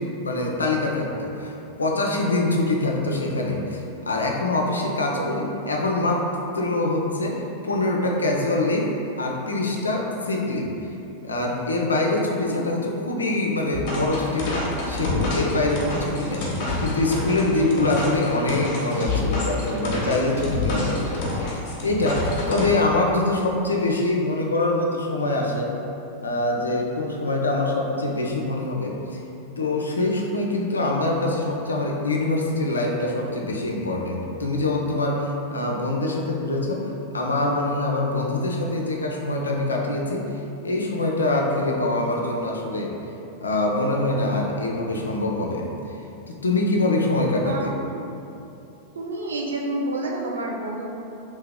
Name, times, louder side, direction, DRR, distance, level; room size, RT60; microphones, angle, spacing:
voice 1, 0.0-6.3 6.5-10.7 11.2-25.7 26.2-29.2 29.6-40.3 40.6-42.9 43.4-45.7 46.3-47.7, left 2 dB, 75° left, 0 dB, 0.4 m, -24 dB
voice 2, 5.1-5.5 12.5-13.0 47.4-48.0 48.9-50.9, right 2 dB, 70° right, 0 dB, 0.4 m, -30 dB
sound 1, 13.7-22.7, left 2 dB, 45° left, 0.8 m, -28 dB
3.0 x 2.8 x 3.5 m, 2.8 s
figure-of-eight pair, 90°, 0 cm